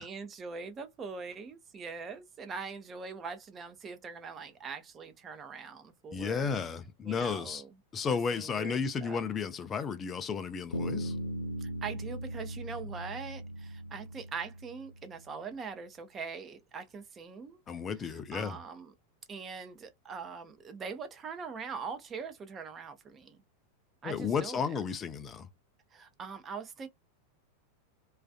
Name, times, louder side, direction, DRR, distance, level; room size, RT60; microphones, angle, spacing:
voice 1, 0.0-6.5 7.0-7.7 8.1-9.3 11.6-17.6 18.0-18.9 19.3-23.4 24.0-24.8 25.9-26.9, right 5 dB, 25° right, 0.7 m, -42 dB
voice 2, 6.1-7.6 7.9-11.2 17.7-18.6 24.0-25.5, left 6 dB, 25° left, 0.4 m, -33 dB
sound 1, 10.7-15.1, equal, 70° left, 0.8 m, -38 dB
2.4 x 2.4 x 2.3 m
figure-of-eight pair, 90°, 0 cm